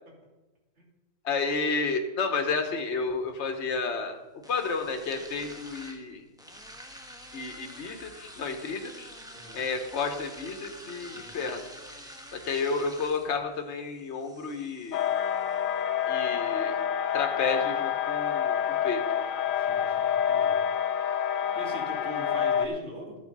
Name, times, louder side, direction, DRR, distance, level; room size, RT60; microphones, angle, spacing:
voice 1, 1.2-4.1 4.5-6.2 7.3-9.1 9.5-11.7 12.3-15.0 16.1-16.8 17.1-19.0, left 4 dB, 60° left, 5 dB, 1.4 m, -31 dB
sound 1, 2.6-20.6, equal, 5° right, 1.2 m, -49 dB
voice 2, 11.1-11.4 19.6-20.5 21.5-23.2, right 1 dB, 55° right, -1 dB, 2.9 m, -41 dB
sound 2, 14.9-22.7, left 9 dB, 85° left, 1.1 m, -27 dB
14.0 x 7.4 x 5.4 m, 1.1 s
omnidirectional pair, 1.4 m